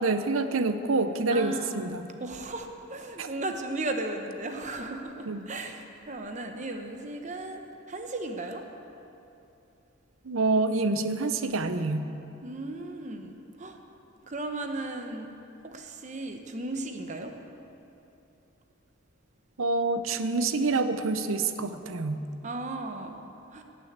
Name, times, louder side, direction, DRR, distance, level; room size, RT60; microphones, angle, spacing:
voice 1, 0.0-2.1 3.2-3.3 5.3-5.5 10.2-12.1 19.6-22.3, right 3 dB, 80° right, 9 dB, 0.7 m, -27 dB
voice 2, 1.3-1.8 2.2-8.6 12.4-13.8 14.2-15.3 15.6-17.3 22.4-23.1 23.5-23.6, right 2 dB, 35° right, 5 dB, 0.9 m, -36 dB
17.5 x 6.3 x 8.0 m, 2.8 s
head